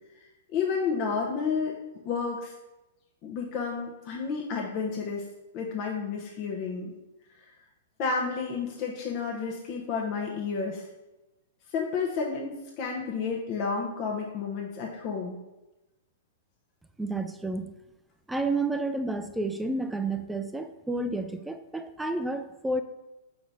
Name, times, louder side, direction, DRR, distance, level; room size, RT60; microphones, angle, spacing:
voice 1, 0.5-2.5 3.2-5.3 5.5-6.9 8.0-10.8 11.7-15.4, left 5 dB, 45° left, -2 dB, 0.9 m, -31 dB
voice 2, 17.0-17.7 18.3-22.8, right 2 dB, 5° right, 8 dB, 0.5 m, -30 dB
4.8 x 3.8 x 5.5 m, 1.0 s
hypercardioid pair, 125°, 0 cm